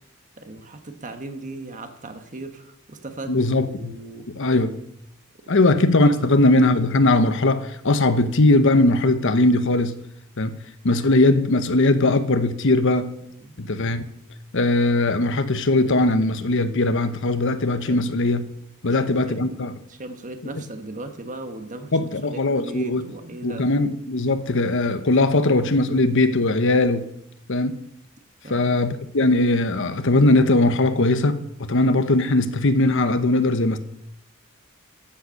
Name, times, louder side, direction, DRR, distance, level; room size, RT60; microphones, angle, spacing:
voice 1, 0.4-3.3 3.6-4.3 5.4-5.7 6.0-6.2 13.2-13.6 17.8-18.0 18.8-19.5 19.9-23.7 28.4-28.8, right 2 dB, 40° right, 1.4 m, -38 dB
voice 2, 3.3-3.9 4.3-4.7 5.5-10.0 10.4-10.6 10.8-13.1 13.6-14.0 14.5-18.4 18.8-19.8 21.9-23.1 23.4-27.1 27.5-27.8 28.5-33.8, left 2 dB, 65° left, 1.0 m, -20 dB
14.5 x 8.1 x 6.4 m
head